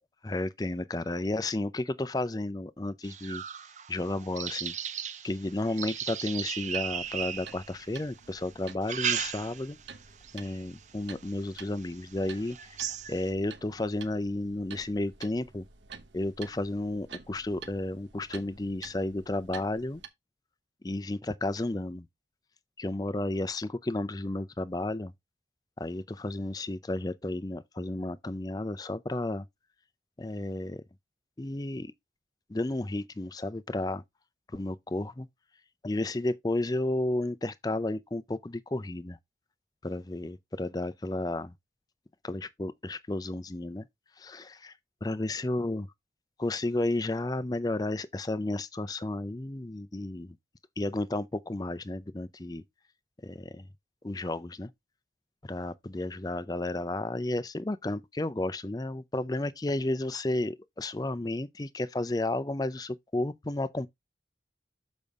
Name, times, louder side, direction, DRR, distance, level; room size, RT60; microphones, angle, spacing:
voice 1, 0.2-3.4 3.9-4.7 5.2-9.8 10.3-12.6 13.1-15.6 16.1-20.0 20.8-22.0 22.8-25.1 25.8-29.4 30.2-30.8 31.4-31.9 32.5-34.0 34.5-35.3 35.8-39.2 39.8-41.5 42.2-43.9 44.2-44.7 45.0-45.9 46.4-50.3 50.8-52.6 53.2-53.7 54.0-54.7 55.5-63.9, left 2 dB, 20° left, 0.5 m, -32 dB
sound 1, 3.0-8.0 8.6-9.8 10.2-10.6 11.2-11.3 11.8-11.9 12.2-13.3, right 9 dB, 40° right, 0.5 m, -36 dB
sound 2, 6.6-20.1, right 6 dB, 85° right, 1.0 m, -50 dB
7.0 x 5.2 x 3.6 m
head